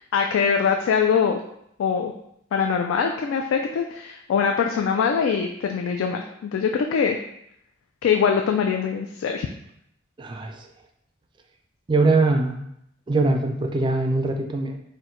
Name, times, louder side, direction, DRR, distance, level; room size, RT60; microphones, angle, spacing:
voice 1, 0.0-1.4 1.8-2.1 2.5-7.2 8.0-9.5, left 6 dB, 85° left, 3 dB, 0.3 m, -23 dB
voice 2, 10.2-10.7 11.9-12.6 13.1-14.8, right 3 dB, 25° right, 4 dB, 0.3 m, -22 dB
4.3 x 2.1 x 3.7 m, 0.75 s
head